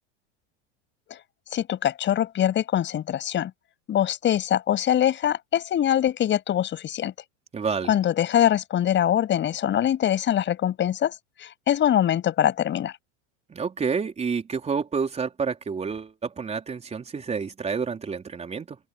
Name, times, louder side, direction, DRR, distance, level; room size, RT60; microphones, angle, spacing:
voice 1, 1.5-3.5 3.9-7.1 7.9-11.1 11.4-12.9, left 10 dB, 35° left, 7.3 m, -23 dB
voice 2, 7.5-8.0 13.5-18.8, right 5 dB, 20° right, 4.4 m, -29 dB
supercardioid pair, 125°, 35 cm